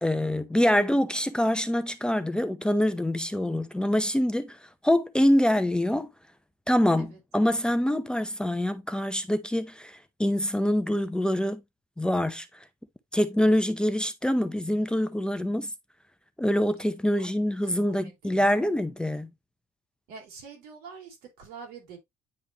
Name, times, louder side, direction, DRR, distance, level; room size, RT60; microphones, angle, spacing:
voice 1, 0.0-4.6 4.8-6.1 6.7-11.6 12.0-12.5 13.1-15.7 16.4-19.3, left 1 dB, 5° left, 0.5 m, -25 dB
voice 2, 17.6-18.7 20.1-22.0, right 5 dB, 90° right, 3.6 m, -46 dB
9.6 x 3.5 x 2.8 m
cardioid pair, 130°, 16 cm